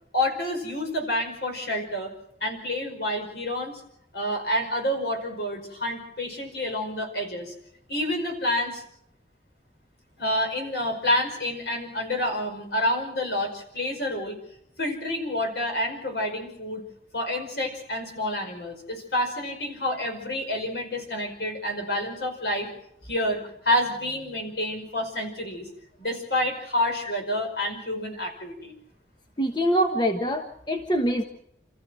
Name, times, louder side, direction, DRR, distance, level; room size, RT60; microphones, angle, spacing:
voice 1, 0.1-2.1 2.4-3.7 4.1-7.5 7.9-8.8 10.2-14.4 14.8-16.8 17.1-22.7 23.1-25.7 26.0-28.7, left 1 dB, 70° left, 3 dB, 5.4 m, -28 dB
voice 2, 29.4-31.2, equal, 25° left, 5 dB, 1.2 m, -24 dB
28.5 x 14.5 x 7.7 m, 0.74 s
head